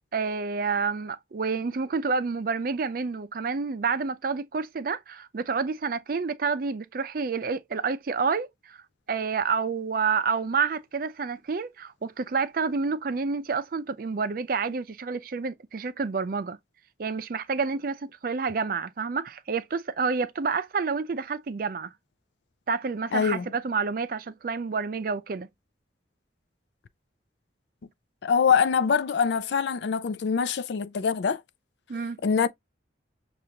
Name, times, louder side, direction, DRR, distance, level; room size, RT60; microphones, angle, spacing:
voice 1, 0.1-16.6 17.0-21.9 22.7-25.5 31.9-32.2, right 5 dB, 50° right, 0.4 m, -29 dB
voice 2, 23.1-23.4 28.2-31.4 32.2-32.5, left 6 dB, 65° left, 0.4 m, -24 dB
6.3 x 2.4 x 2.8 m
head